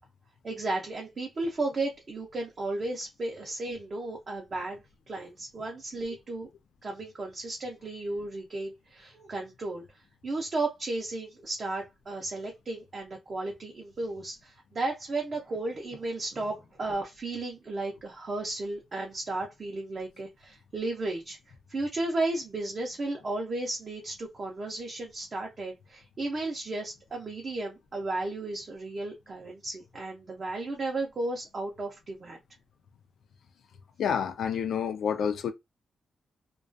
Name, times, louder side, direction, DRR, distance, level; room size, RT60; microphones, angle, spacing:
voice 1, 0.4-4.8 5.1-6.5 6.8-21.4 21.7-32.4, right 2 dB, 35° right, 0.5 m, -34 dB
voice 2, 34.0-35.5, left 7 dB, 70° left, 0.4 m, -28 dB
2.3 x 2.2 x 2.4 m
wide cardioid pair, 165°, 0 cm